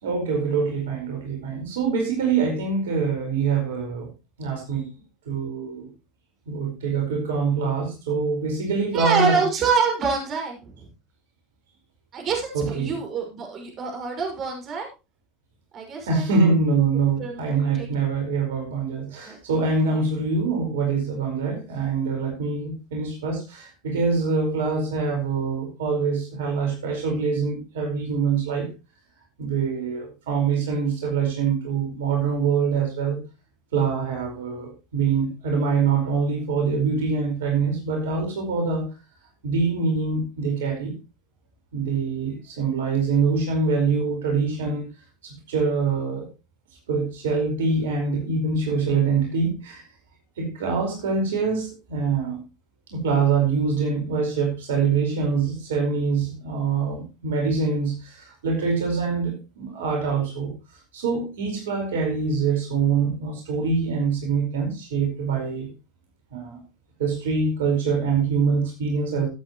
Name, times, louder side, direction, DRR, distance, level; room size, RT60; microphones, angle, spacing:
voice 1, 0.0-4.1 4.4-4.9 5.2-5.9 6.5-9.4 12.5-12.9 16.0-28.7 29.4-33.2 33.7-38.9 39.4-40.9 41.7-44.9 45.2-46.3 46.9-49.8 50.4-52.4 52.9-60.5 60.9-65.7 66.3-66.6 67.0-69.3, right 5 dB, 80° right, 2 dB, 4.9 m, -24 dB
voice 2, 8.9-10.9 12.1-14.9 15.7-16.3 17.2-17.5 17.7-18.1 19.3-19.4 19.9-20.0, right 5 dB, 40° right, 2 dB, 5.6 m, -26 dB
16.5 x 8.6 x 3.1 m, 0.28 s
hypercardioid pair, 90°, 0 cm